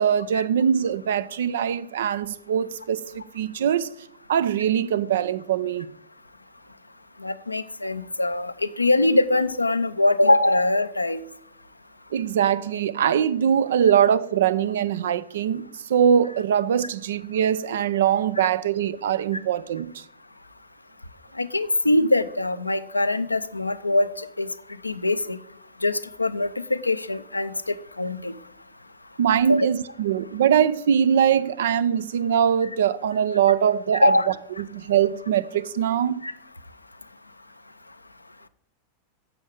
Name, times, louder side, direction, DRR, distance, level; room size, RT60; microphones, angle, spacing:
voice 1, 0.0-3.9 4.3-5.9 12.1-20.0 29.2-34.1 34.7-36.2, right 8 dB, 60° right, 0.4 m, -22 dB
voice 2, 7.2-11.2 21.4-24.5 24.8-25.4 25.8-27.5 28.0-28.3 29.5-29.7 34.0-34.3 36.2-36.3, left 2 dB, 85° left, 0.5 m, -22 dB
9.7 x 7.1 x 3.4 m
figure-of-eight pair, 90°, 0 cm